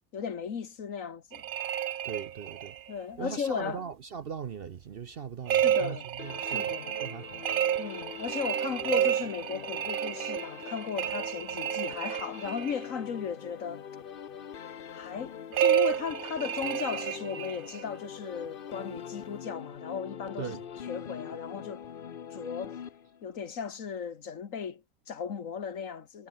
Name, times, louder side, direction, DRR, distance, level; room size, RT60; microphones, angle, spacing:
voice 1, 0.1-1.4 2.9-3.8 5.5-6.1 6.4-6.9 7.8-13.8 14.9-20.5 20.8-21.8 22.3-22.8 23.2-26.3, left 6 dB, 65° left, 1.8 m, -36 dB
sound 1, 1.3-2.9 5.5-12.8 15.5-17.8, right 11 dB, 75° right, 0.4 m, -30 dB
voice 2, 2.0-2.8 3.2-6.7 7.0-7.4 20.4-20.6, right 7 dB, 50° right, 0.8 m, -39 dB
sound 2, 6.2-23.4, left 8 dB, 45° left, 0.9 m, -43 dB
omnidirectional pair, 1.5 m